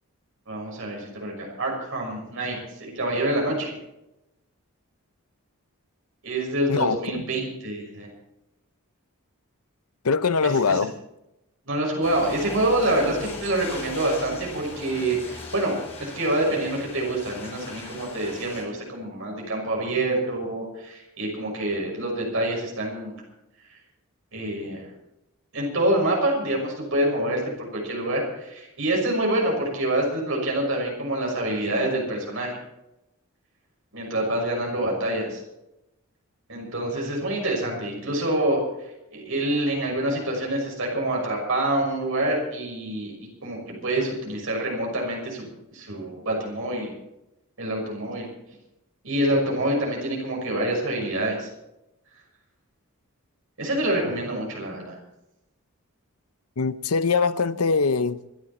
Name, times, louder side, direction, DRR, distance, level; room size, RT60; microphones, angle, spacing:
voice 1, 0.5-3.7 6.2-8.1 10.4-10.8 11.7-23.1 24.3-24.9 25.5-32.6 33.9-35.4 36.5-38.6 39.1-43.1 43.4-45.5 45.7-46.9 47.6-48.3 49.0-51.5 53.6-54.9, right 1 dB, 65° right, 6.1 m, -26 dB
voice 2, 6.7-7.2 10.0-10.9 56.6-58.2, left 4 dB, 85° left, 0.7 m, -22 dB
sound 1, 12.0-18.6, left 2 dB, 30° left, 5.5 m, -39 dB
25.5 x 11.0 x 4.3 m
head